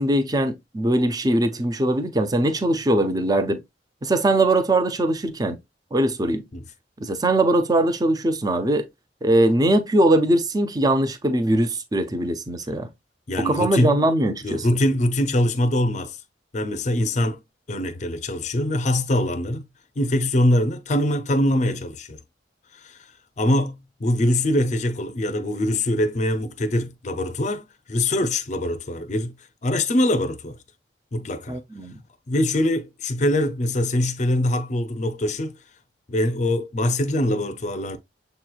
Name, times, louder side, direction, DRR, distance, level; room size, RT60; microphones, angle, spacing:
voice 1, 0.0-3.6 4.0-5.6 5.9-6.4 7.0-8.9 9.2-12.9 13.4-14.7 31.5-32.0, right 1 dB, 20° right, 0.5 m, -21 dB
voice 2, 13.3-14.0 14.4-16.2 16.5-17.4 17.7-19.7 20.0-22.2 22.7-23.0 23.4-29.4 29.6-30.6 31.1-31.6 32.3-35.6 36.1-38.0, left 1 dB, 40° left, 0.5 m, -23 dB
6.8 x 3.0 x 2.3 m
head